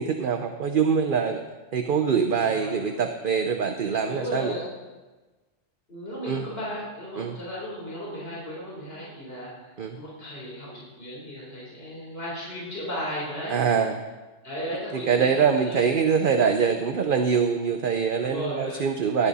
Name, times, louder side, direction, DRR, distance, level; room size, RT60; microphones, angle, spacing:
voice 1, 0.0-1.4 1.7-4.5 6.3-6.5 7.2-7.4 9.8-10.0 13.5-14.0 15.1-19.3, right 6 dB, 50° right, 6 dB, 0.8 m, -24 dB
voice 2, 2.4-2.9 4.0-4.7 5.9-13.8 14.4-15.9 18.2-18.9 19.2-19.3, equal, 55° left, -6 dB, 4.3 m, -35 dB
18.0 x 10.5 x 4.1 m, 1.2 s
omnidirectional pair, 1.2 m